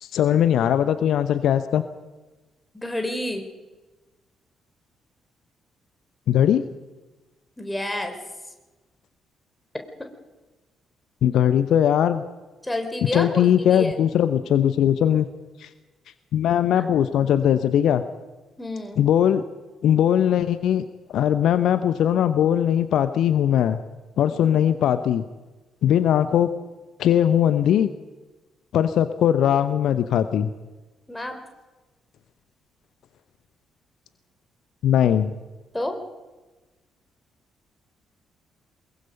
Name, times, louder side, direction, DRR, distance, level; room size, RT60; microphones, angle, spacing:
voice 1, 0.0-1.8 6.3-6.6 11.2-12.2 13.1-15.3 15.6-15.7 16.3-18.0 19.0-19.4 19.8-20.8 21.1-23.8 24.2-25.2 25.8-26.5 27.0-27.9 28.7-30.5 34.8-35.3, left 10 dB, 60° left, 12 dB, 0.8 m, -20 dB
voice 2, 2.7-3.4 7.6-8.1 12.6-13.9 16.8-16.9 18.6-19.0 24.3-24.6 31.1-31.4 35.7-35.9, left 1 dB, 10° left, 5 dB, 4.3 m, -29 dB
23.0 x 21.5 x 5.4 m, 1.2 s
figure-of-eight pair, 40°, 0 cm